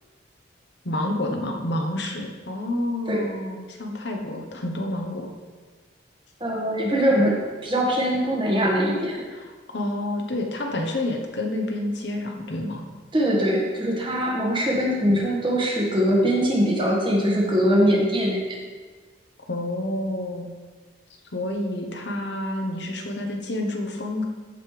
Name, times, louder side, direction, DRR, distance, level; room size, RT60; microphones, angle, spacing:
voice 1, 0.8-5.3 9.3-12.8 19.5-20.5 21.3-24.3, left 1 dB, 60° left, 2 dB, 1.0 m, -29 dB
voice 2, 6.4-9.2 13.1-18.6, equal, 25° right, -3 dB, 1.6 m, -22 dB
14.5 x 5.4 x 3.3 m, 1.4 s
head